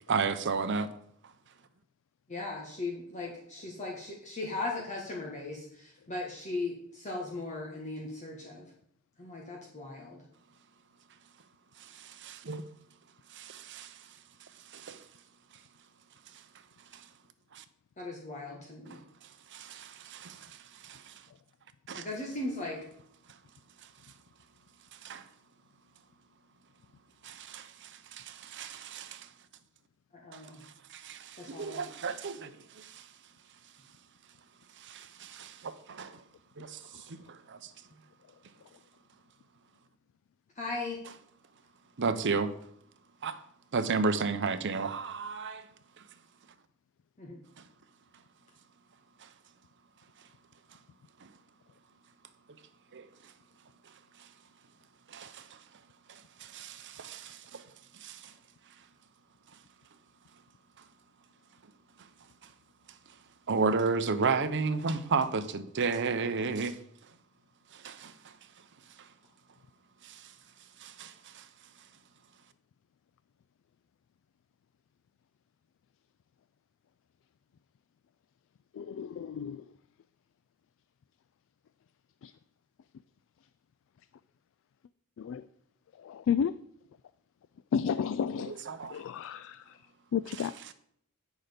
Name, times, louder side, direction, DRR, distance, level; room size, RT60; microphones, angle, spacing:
voice 1, 0.1-0.9 11.8-12.6 13.3-14.0 14.7-15.0 16.9-17.1 17.5-17.6 18.9-19.0 19.5-21.1 21.9-22.1 24.9-25.3 27.2-29.3 30.3-33.1 34.8-36.2 36.6-37.7 42.0-42.5 43.2-43.4 43.7-45.7 49.2-49.3 51.2-51.3 52.9-53.1 54.2-54.3 55.1-55.6 56.1-57.6 57.9-58.3 63.5-66.8 67.7-68.3 69.0-69.1 70.0-70.3 70.8-71.5 88.4-89.0 90.3-90.7, right 4 dB, 55° right, 0.7 m, -34 dB
voice 2, 2.3-8.7 9.2-10.2 18.0-19.0 21.9-22.8 30.2-30.6 31.4-31.9 40.6-41.0 47.2-47.4, left 2 dB, 35° left, 1.5 m, -38 dB
voice 3, 78.8-79.6 85.2-85.4 86.1-86.5 87.7-88.5 88.9-89.6 90.1-90.5, left 7 dB, 60° left, 0.3 m, -31 dB
9.1 x 6.4 x 5.1 m
head